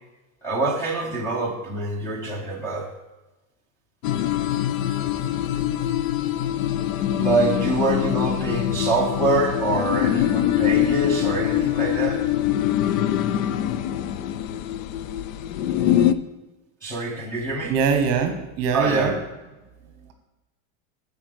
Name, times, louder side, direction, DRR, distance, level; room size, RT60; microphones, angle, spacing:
voice 1, 0.4-2.9 7.2-12.2 16.8-17.7 18.7-19.2, right 2 dB, 5° left, -1 dB, 0.9 m, -25 dB
sound 1, 4.0-16.1, left 11 dB, 75° left, 0.6 m, -23 dB
voice 2, 17.7-19.1, right 5 dB, 40° right, 5 dB, 1.3 m, -22 dB
7.4 x 4.8 x 6.7 m, 1.1 s
supercardioid pair, 170°, 40 cm